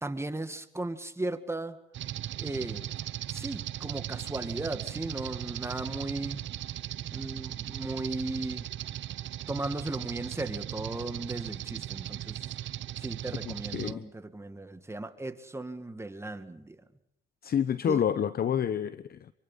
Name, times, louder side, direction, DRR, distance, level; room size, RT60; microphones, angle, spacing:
voice 1, 0.0-1.8 2.4-2.9 3.3-6.4 7.1-8.7 9.5-12.4 13.0-16.8 17.8-18.0, right 2 dB, 15° right, 9 dB, 1.9 m, -36 dB
sound 1, 1.9-13.9, right 12 dB, 70° right, 0.9 m, -38 dB
voice 2, 13.5-14.1 17.4-19.3, left 8 dB, 50° left, 14 dB, 0.9 m, -29 dB
26.5 x 24.0 x 5.6 m, 0.80 s
cardioid pair, 90°, 20 cm